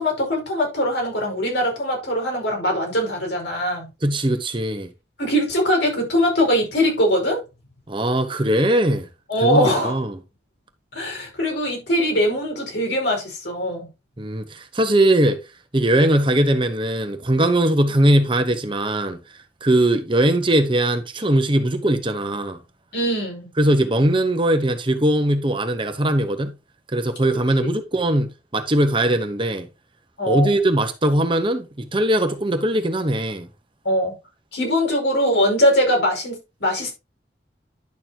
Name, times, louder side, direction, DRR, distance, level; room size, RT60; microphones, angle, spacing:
voice 1, 0.0-3.9 5.2-7.4 9.3-10.0 10.9-13.9 22.9-23.5 27.6-27.7 30.2-30.6 33.8-34.2 34.5-36.9, equal, 80° left, 5.1 m, -21 dB
voice 2, 4.0-4.9 7.9-9.1 9.4-10.2 14.2-15.4 15.7-19.2 19.6-22.6 23.6-26.6 26.9-29.7 30.3-33.5, right 1 dB, 30° right, 1.0 m, -20 dB
10.5 x 6.8 x 2.9 m
head